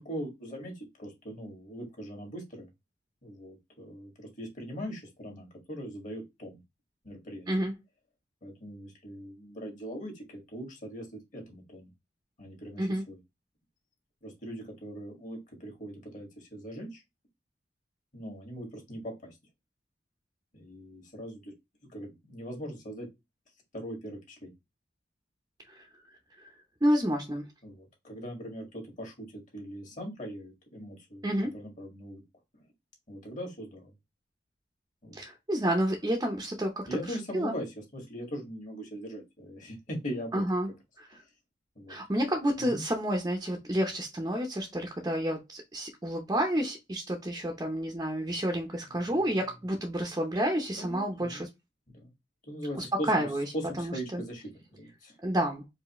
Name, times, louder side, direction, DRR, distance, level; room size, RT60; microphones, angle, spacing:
voice 1, 0.0-2.7 3.2-6.6 7.0-7.5 8.4-11.9 12.4-13.2 14.2-17.0 18.1-19.4 20.5-21.5 21.9-23.1 23.7-24.5 27.6-31.2 31.5-32.2 33.1-33.9 35.0-35.2 36.9-40.4 41.8-42.0 42.6-42.8 50.8-51.4 51.9-52.1 52.4-53.3 53.5-55.2, equal, 45° left, 1.9 m, -40 dB
voice 2, 26.8-27.4 31.2-31.5 35.1-37.6 40.3-40.7 41.0-41.2 41.9-51.5 52.8-53.5 53.8-54.2 55.2-55.6, right 1 dB, 20° right, 0.7 m, -30 dB
4.8 x 2.7 x 3.0 m
head